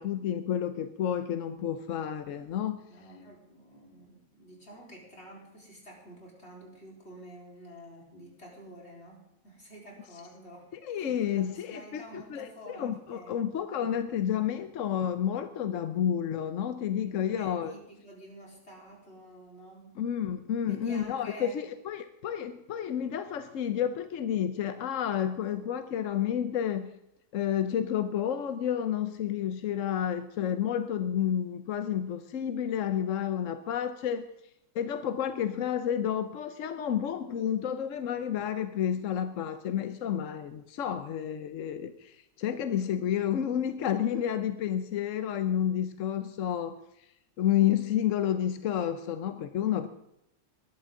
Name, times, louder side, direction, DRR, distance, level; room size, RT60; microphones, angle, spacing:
voice 1, 0.0-2.8 10.7-17.7 20.0-26.9 27.3-34.2 34.7-46.8 47.4-49.9, left 9 dB, 60° left, 10 dB, 0.9 m, -30 dB
voice 2, 2.9-13.4 13.8-14.0 17.0-20.2 20.6-21.6, equal, 35° left, -2 dB, 4.4 m, -49 dB
21.5 x 12.0 x 3.8 m, 0.80 s
omnidirectional pair, 1.9 m